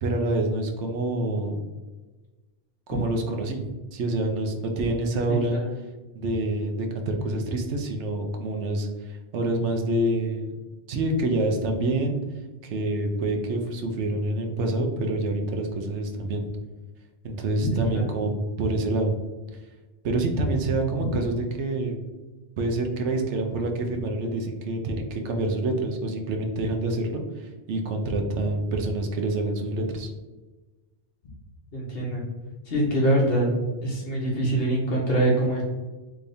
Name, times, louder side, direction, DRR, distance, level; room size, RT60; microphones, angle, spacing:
voice 1, 0.0-1.6 2.9-3.6 3.9-5.6 6.1-10.6 10.9-12.2 12.6-16.4 17.2-18.3 18.6-19.1 20.0-22.0 22.6-30.1, right 2 dB, 75° right, 3 dB, 1.0 m, -27 dB
voice 2, 17.7-18.1 21.0-21.1 31.7-32.2 32.7-33.5 33.8-35.6, right 1 dB, 60° left, -4 dB, 1.1 m, -24 dB
3.4 x 3.4 x 2.6 m, 1.2 s
omnidirectional pair, 1.2 m